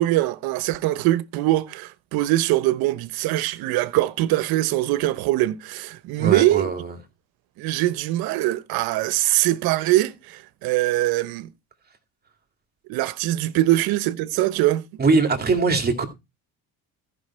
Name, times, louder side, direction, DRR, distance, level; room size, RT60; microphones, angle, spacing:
voice 1, 0.0-6.7 7.6-11.5 12.9-14.8, right 16 dB, 75° right, 1.0 m, -22 dB
voice 2, 6.2-6.9 15.0-16.1, right 4 dB, 25° right, 2.5 m, -21 dB
14.5 x 5.9 x 4.3 m
cardioid pair, 120°, 37 cm